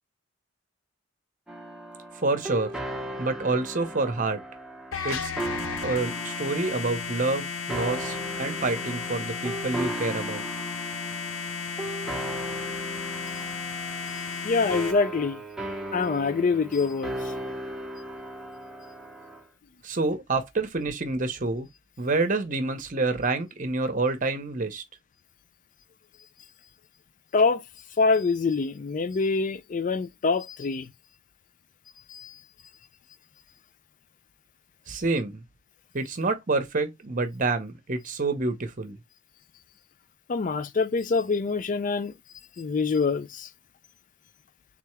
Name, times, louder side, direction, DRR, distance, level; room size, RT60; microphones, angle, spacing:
sound 1, 1.5-19.4, right 1 dB, 5° right, 0.9 m, -37 dB
voice 1, 2.1-2.7 3.2-4.4 5.0-5.3 5.8-10.4 19.8-21.7 22.0-24.8 34.9-35.4 35.9-39.0, right 3 dB, 40° right, 0.8 m, -28 dB
sound 2, 4.9-14.9, left 5 dB, 75° left, 0.7 m, -34 dB
voice 2, 14.4-15.4 15.9-17.3 27.3-27.6 28.0-30.9 32.1-32.4 40.3-42.1 42.6-43.5, left 4 dB, 40° left, 0.4 m, -25 dB
3.7 x 3.4 x 3.2 m
head